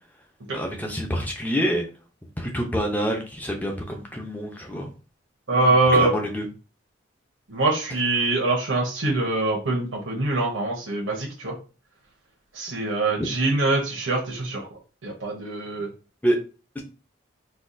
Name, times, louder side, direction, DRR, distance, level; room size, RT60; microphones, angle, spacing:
voice 1, 0.5-1.9 2.4-4.9 5.5-6.5 16.2-16.4, equal, 10° left, 2 dB, 0.6 m, -27 dB
voice 2, 5.5-6.1 7.5-11.5 12.5-14.6 15.0-15.9, right 2 dB, 80° right, -2 dB, 0.9 m, -23 dB
4.1 x 2.3 x 2.6 m, 0.35 s
head